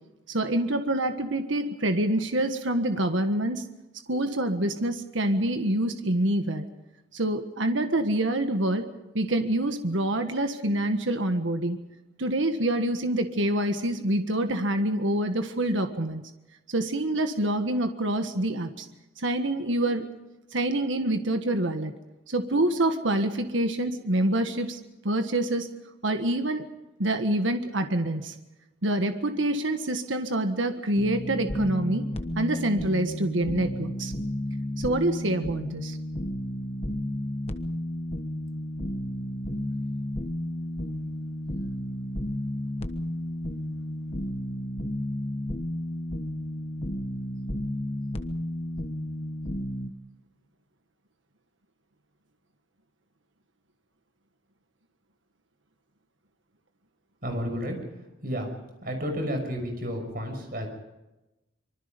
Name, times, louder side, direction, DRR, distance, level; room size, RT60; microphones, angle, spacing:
voice 1, 0.3-3.6 4.1-6.6 7.1-8.9 9.1-11.8 12.2-16.2 16.7-18.9 19.2-20.1 20.5-21.9 22.3-25.7 26.0-26.6 27.0-28.3 28.8-32.0 32.3-34.1 34.8-36.0, right 1 dB, 75° right, 7 dB, 1.6 m, -26 dB
sound 1, 31.0-49.9, left 1 dB, 30° left, 1.3 m, -32 dB
voice 2, 57.2-57.8 58.2-58.5 58.8-60.7, equal, 50° right, 4 dB, 6.1 m, -31 dB
25.5 x 24.0 x 5.3 m, 1.0 s
head